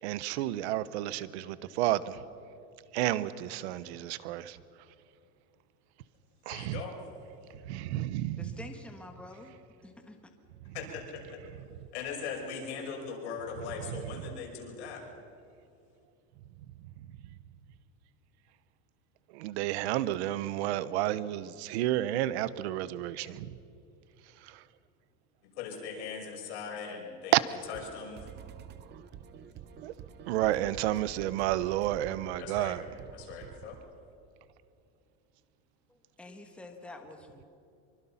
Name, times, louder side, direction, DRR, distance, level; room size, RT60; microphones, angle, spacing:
voice 1, 0.0-2.2 2.9-4.6 6.4-6.8 7.5-8.6 10.7-10.8 13.9-14.0 16.8-17.1 19.3-23.6 24.4-24.6 27.3-27.4 29.8-29.9 30.3-32.9, right 14 dB, 75° right, 16 dB, 1.0 m, -31 dB
voice 2, 6.5-7.0 10.7-11.2 11.9-15.0 25.6-27.3 27.7-28.2 32.4-32.8 33.1-33.7, left 6 dB, 85° left, 0 dB, 6.2 m, -39 dB
voice 3, 8.4-9.5 9.8-10.2 35.9-37.4, left 2 dB, 5° left, 4 dB, 1.5 m, -47 dB
sound 1, 27.6-33.7, right 8 dB, 30° right, 0.9 m, -48 dB
25.5 x 24.0 x 5.8 m, 2.5 s
supercardioid pair, 150°, 33 cm